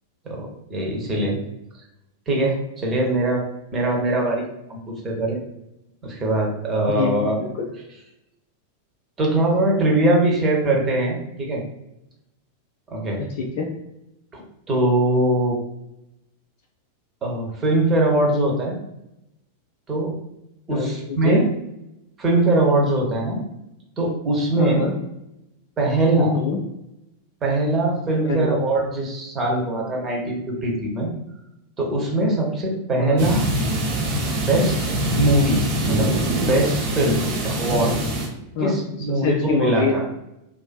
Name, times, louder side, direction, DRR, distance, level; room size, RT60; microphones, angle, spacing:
voice 1, 0.2-1.4 2.3-3.4 3.7-4.4 4.7-4.8 5.0-5.4 6.0-7.3 9.2-11.6 12.9-13.2 14.3-15.6 17.2-18.8 19.9-20.1 20.7-21.5 22.2-23.4 24.0-24.8 25.8-26.4 27.4-31.1 31.8-33.4 34.3-34.8 35.1-35.6 35.9-36.1 36.5-38.0 38.6-40.0, right 2 dB, 25° right, -1 dB, 0.7 m, -21 dB
voice 2, 6.9-7.7 13.2-13.7 20.7-21.4 24.6-24.9 26.2-26.6 28.3-28.6 33.0-33.2 38.5-38.8 39.2-40.1, left 4 dB, 50° left, 0 dB, 0.3 m, -25 dB
sound 1, 33.2-38.3, right 1 dB, 55° right, 0.8 m, -23 dB
2.4 x 2.4 x 2.2 m, 0.86 s
figure-of-eight pair, 90°, 0 cm